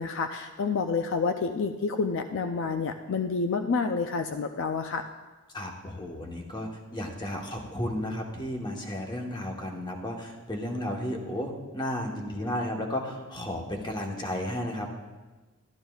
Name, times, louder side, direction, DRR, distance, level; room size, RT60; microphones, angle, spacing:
voice 1, 0.0-5.0, left 4 dB, 60° left, 7 dB, 0.4 m, -29 dB
voice 2, 5.5-14.9, left 1 dB, 20° left, 1 dB, 1.1 m, -33 dB
13.0 x 11.5 x 2.3 m, 1.2 s
head